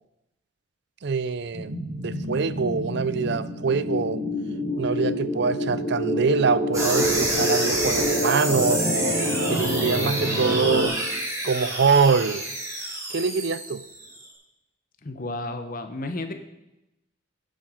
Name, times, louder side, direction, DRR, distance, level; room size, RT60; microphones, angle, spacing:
voice 1, 1.0-4.2 4.8-8.8 9.5-11.0 11.4-12.4 13.1-13.8, right 5 dB, 55° right, 16 dB, 0.5 m, -24 dB
sound 1, 1.5-10.9, equal, 80° right, 3.5 m, -27 dB
sound 2, 6.7-14.2, right 1 dB, 15° right, 3.4 m, -29 dB
voice 2, 15.0-16.3, left 2 dB, 45° left, 7 dB, 1.0 m, -32 dB
14.5 x 7.9 x 5.1 m, 0.93 s
head